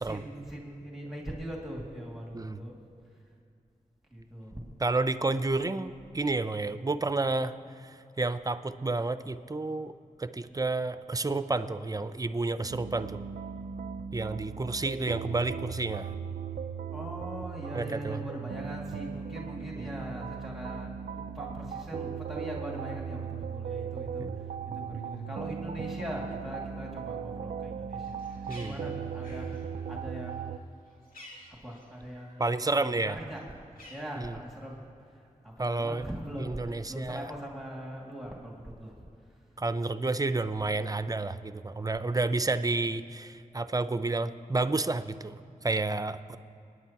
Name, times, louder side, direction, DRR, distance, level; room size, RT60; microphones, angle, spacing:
voice 1, 0.0-2.7 4.1-4.6 16.9-24.3 24.7-29.5 29.9-30.6 31.6-32.7 33.0-33.4 33.9-34.8 35.1-39.0 46.1-46.2, equal, ahead, -2 dB, 2.3 m, -41 dB
voice 2, 4.8-7.5 7.8-9.9 10.2-13.2 14.1-16.1 17.7-18.2 19.8-19.9 24.2-24.4 28.5-28.8 32.4-33.2 34.2-34.4 35.6-36.1 36.4-37.3 39.6-46.4, right 3 dB, 25° right, 12 dB, 0.6 m, -30 dB
sound 1, 12.7-30.6, right 7 dB, 75° right, 0.4 m, -38 dB
Bird, 27.9-32.5 32.8-34.7, left 1 dB, 80° left, 2.3 m, -53 dB
24.5 x 9.5 x 2.9 m, 2.6 s
cardioid pair, 45°, 14 cm